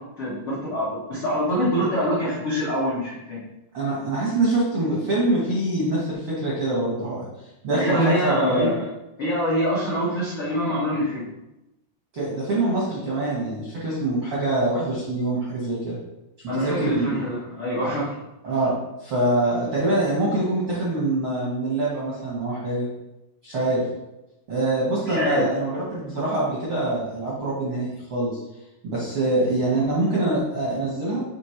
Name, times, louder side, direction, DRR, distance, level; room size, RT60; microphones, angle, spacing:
voice 1, 0.0-3.4 7.7-8.8 9.2-11.3 16.5-18.1 25.1-25.5, equal, 65° left, -9 dB, 1.3 m, -25 dB
voice 2, 3.7-7.3 7.6-8.7 12.1-16.0 16.5-17.2 18.4-18.7 19.0-22.8 23.4-23.8 24.5-28.4 28.8-31.2, right 2 dB, 65° right, -7 dB, 1.3 m, -24 dB
6.4 x 3.4 x 4.4 m, 0.93 s
omnidirectional pair, 4.5 m